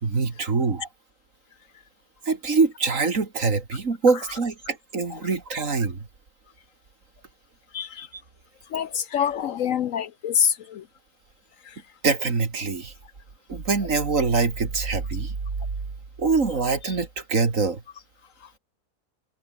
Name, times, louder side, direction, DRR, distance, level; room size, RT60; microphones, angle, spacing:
voice 1, 0.0-0.9 2.3-6.0 12.0-12.9 13.5-15.3 16.2-17.8, right 4 dB, 55° right, 2.8 m, -24 dB
voice 2, 7.7-8.1 8.7-10.5, left 8 dB, 65° left, 1.0 m, -25 dB
omnidirectional pair, 1.6 m